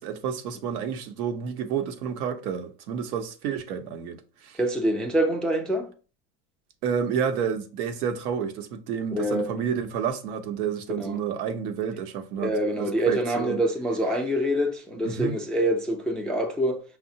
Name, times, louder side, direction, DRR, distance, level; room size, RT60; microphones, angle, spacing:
voice 1, 0.0-4.6 6.8-13.6 15.0-15.4, right 7 dB, 80° right, 0.8 m, -30 dB
voice 2, 4.5-5.9 9.1-9.5 11.0-11.2 12.4-16.8, right 1 dB, ahead, 0.3 m, -25 dB
5.4 x 2.1 x 2.7 m
hypercardioid pair, 90°, 44 cm